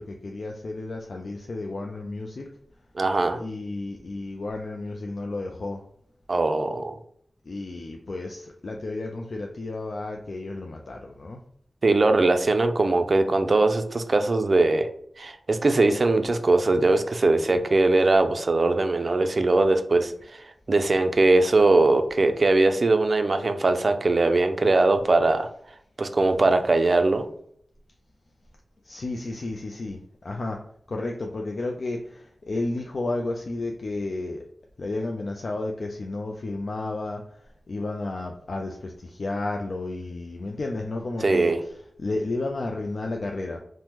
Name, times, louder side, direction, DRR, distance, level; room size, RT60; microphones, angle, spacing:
voice 1, 0.0-2.5 3.4-5.8 7.4-11.4 28.8-30.6 30.9-34.4 34.8-43.6, left 2 dB, 65° left, 1 dB, 0.3 m, -32 dB
voice 2, 3.0-3.4 6.3-7.0 11.8-14.9 15.2-25.5 26.0-27.3 41.2-41.6, right 2 dB, 55° right, 8 dB, 0.3 m, -21 dB
3.4 x 2.0 x 2.9 m, 0.65 s
wide cardioid pair, 90°, 0 cm